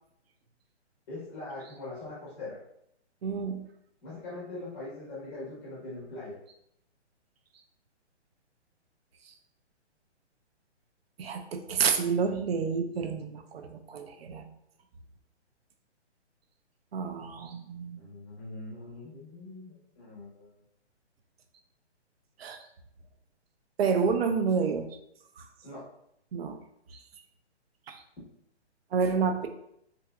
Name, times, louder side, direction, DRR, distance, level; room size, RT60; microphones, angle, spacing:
voice 1, 1.1-2.6 4.0-6.4 18.0-20.5 25.6-25.9, left 2 dB, 10° left, -7 dB, 0.6 m, -42 dB
voice 2, 3.2-3.6 11.2-14.5 16.9-18.0 22.4-22.6 23.8-24.9 25.4-25.5 26.3-26.6 27.9-28.0 28.9-29.5, right 5 dB, 60° right, 6 dB, 0.5 m, -29 dB
3.4 x 2.9 x 2.2 m, 0.74 s
hypercardioid pair, 155°, 35 cm